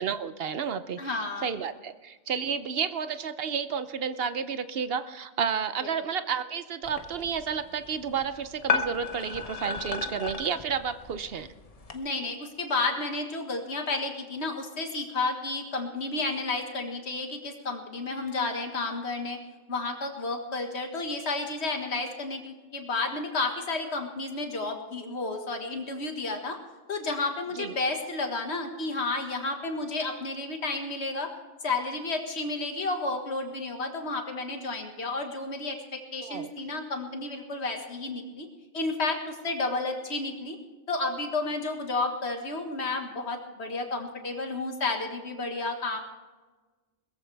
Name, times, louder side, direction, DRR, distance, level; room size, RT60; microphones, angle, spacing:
voice 1, 0.0-11.5 27.5-27.7 36.2-36.5, right 7 dB, 55° right, 12 dB, 0.8 m, -31 dB
voice 2, 1.0-1.5 11.9-19.4 19.7-26.6 26.9-31.3 31.6-38.5 38.7-40.6 40.9-46.0, left 3 dB, 55° left, 4 dB, 1.9 m, -31 dB
sound 1, 6.8-12.0, left 5 dB, 30° left, 1.0 m, -34 dB
20.5 x 14.5 x 3.4 m, 1.3 s
omnidirectional pair, 1.3 m